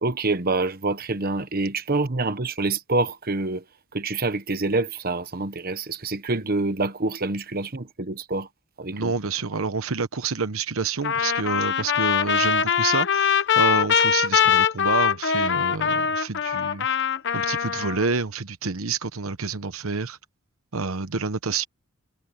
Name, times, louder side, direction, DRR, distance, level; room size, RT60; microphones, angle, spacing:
voice 1, 0.0-3.6 3.9-8.5 8.8-9.1, right 3 dB, 45° right, 1.1 m, -26 dB
voice 2, 8.9-16.9 17.3-20.2 20.7-21.6, right 4 dB, 75° right, 1.0 m, -28 dB
Trumpet, 11.0-18.1, left 7 dB, 55° left, 1.0 m, -22 dB
head